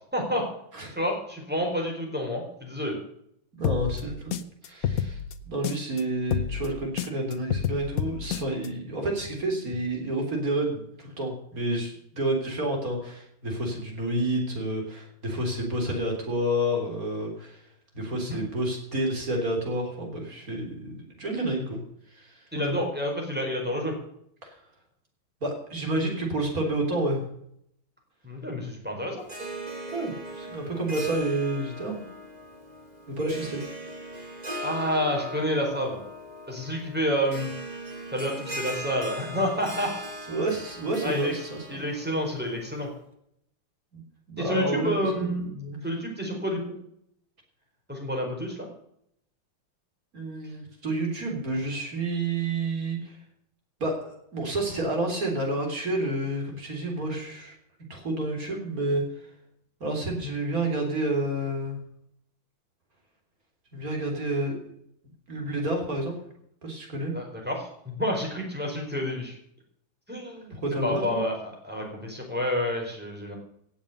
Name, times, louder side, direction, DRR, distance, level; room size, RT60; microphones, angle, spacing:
voice 1, 0.1-0.5 0.9-3.0 18.3-18.4 22.5-23.9 28.2-29.2 34.6-36.0 36.5-37.5 38.1-39.9 41.0-41.3 41.7-42.9 44.4-45.5 45.8-46.8 47.9-48.7 67.1-69.3 70.1-73.4, equal, 5° right, 0 dB, 4.4 m, -29 dB
sound 1, 3.6-6.0 6.3-8.7, left 9 dB, 60° left, 1.0 m, -29 dB
voice 2, 3.6-4.3 4.6-5.2 5.4-17.6 17.9-21.8 22.1-22.9 24.4-24.6 25.4-27.2 29.9-32.0 33.1-33.7 40.3-41.7 43.9-44.0 44.3-45.8 50.1-53.2 53.8-57.6 57.9-59.0 59.8-61.8 63.7-64.5 65.3-66.1 66.6-67.1 70.5-71.2, right 1 dB, 45° right, 1 dB, 4.1 m, -29 dB
Harp, 29.2-42.9, equal, 20° right, 2.4 m, -39 dB
17.5 x 7.2 x 6.7 m, 0.73 s
omnidirectional pair, 2.2 m